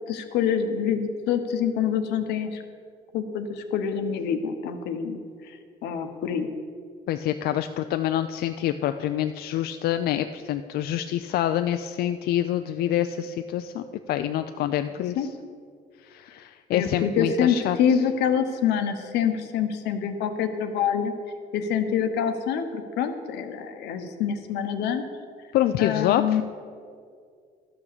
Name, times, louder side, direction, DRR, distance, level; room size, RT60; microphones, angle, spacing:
voice 1, 0.1-2.6 3.1-6.5 15.2-15.3 16.7-21.1 21.5-25.0 25.8-26.4, left 7 dB, 85° left, 8 dB, 1.0 m, -26 dB
voice 2, 7.1-15.3 16.0-18.0 25.5-26.4, left 11 dB, 70° left, 8 dB, 0.4 m, -26 dB
12.0 x 6.0 x 6.7 m, 2.2 s
cardioid pair, 110°, 17 cm